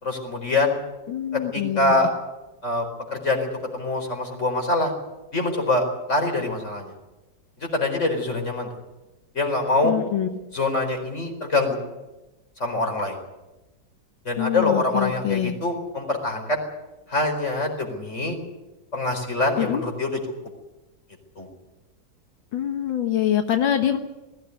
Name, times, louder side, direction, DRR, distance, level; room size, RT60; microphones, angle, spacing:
voice 1, 0.0-0.7 1.3-2.1 2.6-2.8 3.1-4.9 5.3-6.9 7.6-8.7 9.3-9.9 10.5-11.8 12.6-13.2 14.2-16.6 17.1-18.4 18.9-20.2 21.4-21.5, left 2 dB, 35° left, 3 dB, 4.8 m, -24 dB
voice 2, 1.1-2.0 9.8-10.3 14.4-15.5 19.6-19.8 22.5-24.0, left 10 dB, 85° left, 5 dB, 2.0 m, -24 dB
20.5 x 16.0 x 9.7 m, 1.0 s
omnidirectional pair, 2.1 m